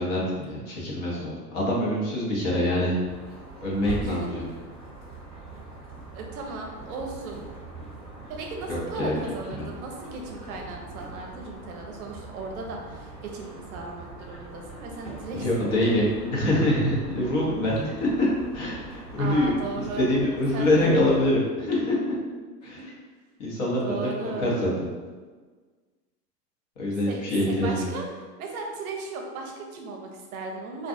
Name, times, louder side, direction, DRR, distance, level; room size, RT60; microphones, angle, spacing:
voice 1, 0.0-3.0 3.6-4.4 8.7-9.1 9.6-9.7 15.3-18.3 18.5-19.6 20.0-22.0 22.6-22.9 23.4-24.1 24.4-24.7 26.8-27.9, left 1 dB, 50° left, -4 dB, 0.9 m, -25 dB
sound 1, 3.0-21.3, right 3 dB, ahead, 0.8 m, -42 dB
voice 2, 4.0-4.3 6.1-7.4 8.3-16.1 19.2-20.1 20.5-21.1 22.6-22.8 23.8-24.8 27.0-27.2 27.5-30.9, right 3 dB, 60° right, 1 dB, 0.6 m, -36 dB
2.5 x 2.3 x 2.5 m, 1.4 s
hypercardioid pair, 115°, 49 cm